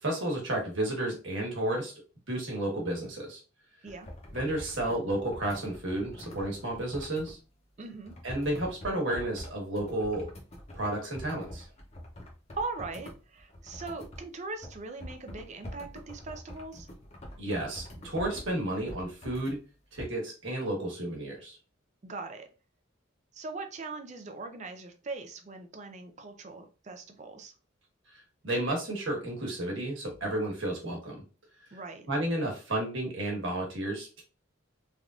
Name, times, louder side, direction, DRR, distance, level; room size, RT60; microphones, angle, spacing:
voice 1, 0.0-1.9 2.3-3.4 4.3-7.4 8.2-10.3 10.7-11.7 17.4-19.6 19.9-21.6 28.4-31.2 32.1-34.2, right 1 dB, 65° right, 1.3 m, -32 dB
sound 1, 3.9-7.4 8.0-14.2 14.6-19.5 20.0-20.1, equal, 30° left, 0.8 m, -45 dB
voice 2, 7.8-8.2 12.6-16.9 22.0-22.5 23.3-27.5 31.7-32.1, right 3 dB, 35° right, 0.4 m, -40 dB
3.3 x 2.5 x 2.4 m
head